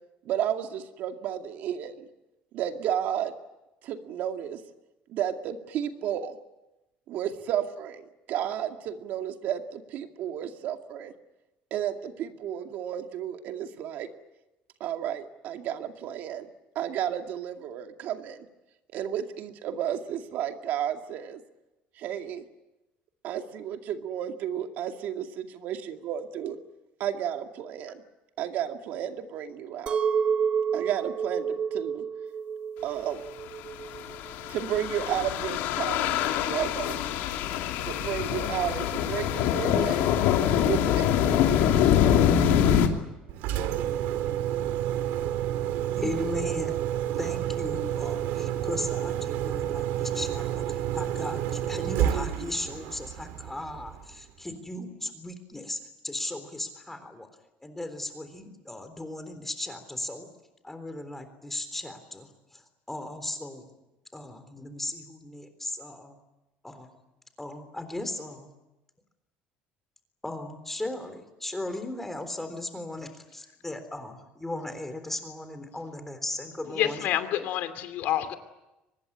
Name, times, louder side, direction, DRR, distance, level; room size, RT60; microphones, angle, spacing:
voice 1, 0.2-2.1 2.5-3.3 3.8-4.6 5.1-6.4 7.1-8.0 8.3-11.1 11.7-14.1 14.8-16.5 16.8-18.4 18.9-21.4 22.0-22.4 23.2-26.6 27.0-28.0 28.4-30.0 30.7-32.0 32.8-33.2 34.5-37.0 37.8-40.0 40.6-41.6 42.4-43.0, right 10 dB, 60° right, 6 dB, 2.2 m, -32 dB
Chink clink, 29.9-35.0, right 7 dB, 35° right, 1.5 m, -30 dB
sound 1, 34.0-42.9, left 9 dB, 85° left, 2.9 m, -24 dB
Engine, 43.3-54.2, right 11 dB, 85° right, 2.2 m, -30 dB
voice 2, 46.0-46.8 47.2-57.3 57.6-60.3 60.6-62.6 62.9-63.7 64.1-66.2 66.6-66.9 67.4-68.5 70.2-77.1, left 1 dB, 10° left, 8 dB, 3.7 m, -37 dB
voice 3, 76.8-78.4, left 11 dB, 65° left, 9 dB, 2.7 m, -28 dB
24.0 x 20.5 x 9.8 m, 1.0 s
cardioid pair, 145°, 3 cm